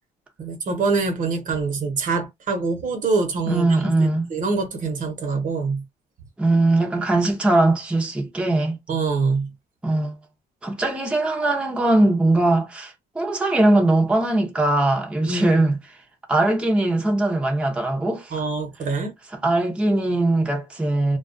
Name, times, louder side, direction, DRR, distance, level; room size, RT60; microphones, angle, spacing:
voice 1, 0.4-5.8 8.9-9.5 15.3-15.5 18.3-19.1, right 4 dB, 50° right, 0.9 m, -25 dB
voice 2, 3.5-4.3 6.4-8.8 9.8-10.2 10.6-16.0 16.3-18.4 19.3-21.2, right 2 dB, 5° right, 0.6 m, -20 dB
2.3 x 2.3 x 2.5 m
cardioid pair, 110°, 17 cm